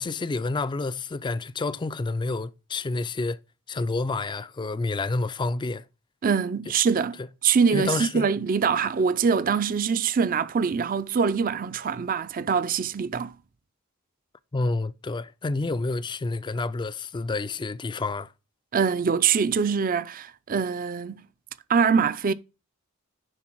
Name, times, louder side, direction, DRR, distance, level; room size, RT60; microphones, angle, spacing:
voice 1, 0.0-3.4 3.7-5.8 7.7-8.3 14.5-18.3, left 3 dB, 20° left, 0.3 m, -29 dB
voice 2, 6.2-13.3 18.7-21.2 21.7-22.3, right 6 dB, 40° right, 0.4 m, -24 dB
10.0 x 3.8 x 6.0 m
head